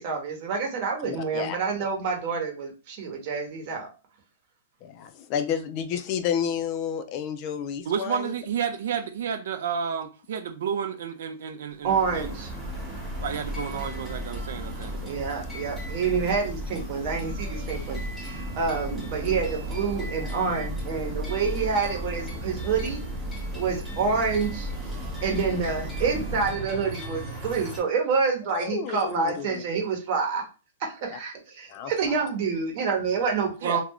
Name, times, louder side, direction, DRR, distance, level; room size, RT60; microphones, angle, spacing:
voice 1, 0.0-3.9 11.8-12.5 15.0-23.0 23.5-24.7 25.2-30.4 30.8-33.8, right 5 dB, 40° right, 0.9 m, -28 dB
voice 2, 1.0-1.6 4.8-8.3 28.4-29.6 31.1-31.2 31.7-32.3, left 8 dB, 35° left, 0.3 m, -31 dB
voice 3, 7.9-12.3 13.2-15.0 33.6-33.8, right 7 dB, 70° right, 0.3 m, -31 dB
sound 1, 11.8-27.8, right 1 dB, 5° left, 0.9 m, -41 dB
Church bell, 11.8-26.8, equal, 20° right, 0.6 m, -35 dB
2.3 x 2.1 x 3.5 m
hypercardioid pair, 150°, 0 cm